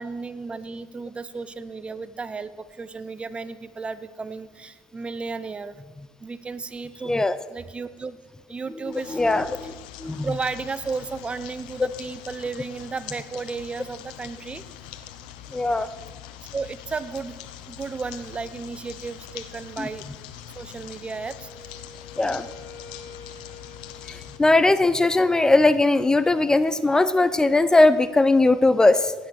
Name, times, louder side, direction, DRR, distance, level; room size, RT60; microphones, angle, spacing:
voice 1, 0.0-5.7 6.2-8.2 8.5-9.2 10.2-14.7 16.5-17.4 17.7-20.1 20.6-21.7, right 4 dB, 25° right, 14 dB, 0.9 m, -34 dB
voice 2, 7.1-7.4 9.1-9.7 10.0-10.3 15.5-15.9 22.2-22.5 24.1-29.1, left 2 dB, 15° left, 13 dB, 0.7 m, -19 dB
sound 1, 8.9-24.4, left 11 dB, 85° left, 1.1 m, -43 dB
Wind instrument woodwind instrument, 21.1-25.0, left 4 dB, 65° left, 2.9 m, -46 dB
16.5 x 10.5 x 6.3 m, 1.3 s
supercardioid pair, 75°, 4 cm